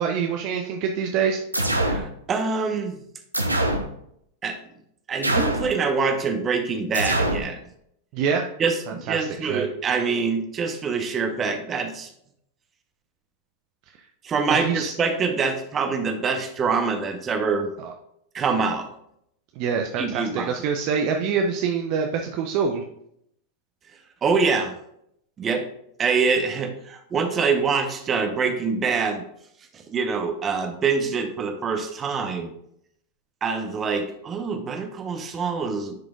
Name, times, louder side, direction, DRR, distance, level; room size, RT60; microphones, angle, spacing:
voice 1, 0.0-1.4 8.1-8.4 8.9-9.2 9.4-9.7 14.6-14.9 17.8-17.9 19.6-22.8, right 6 dB, 45° right, 3 dB, 0.6 m, -25 dB
sound 1, 1.5-2.1 3.3-3.9 5.2-5.7 6.9-7.5, right 1 dB, 85° right, 0.7 m, -23 dB
voice 2, 1.8-3.0 4.4-4.6 5.1-7.6 8.6-12.1 14.2-17.7 18.3-18.9 20.0-20.5 24.2-24.7 25.4-25.6 26.0-29.2 29.9-32.5 33.4-36.0, right 5 dB, 25° right, 6 dB, 1.0 m, -25 dB
10.5 x 4.9 x 2.4 m, 0.73 s
figure-of-eight pair, 90°, 0 cm